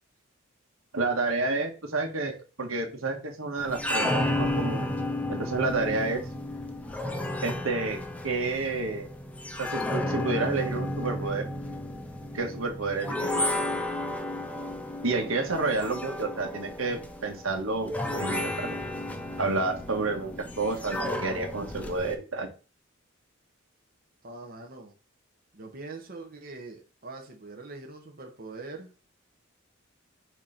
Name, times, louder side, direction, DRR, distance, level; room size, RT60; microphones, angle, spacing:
voice 1, 0.9-4.9 5.3-6.2 7.4-8.0 8.2-9.1 9.6-11.5 12.3-13.5 15.0-18.8 19.4-22.5, right 3 dB, 85° right, 4 dB, 1.4 m, -30 dB
sound 1, 3.6-22.2, left 1 dB, 5° left, 0.8 m, -33 dB
voice 2, 15.2-15.8 24.2-25.0 25.5-28.9, right 3 dB, 50° right, 2 dB, 1.1 m, -43 dB
6.5 x 3.0 x 5.1 m, 0.34 s
head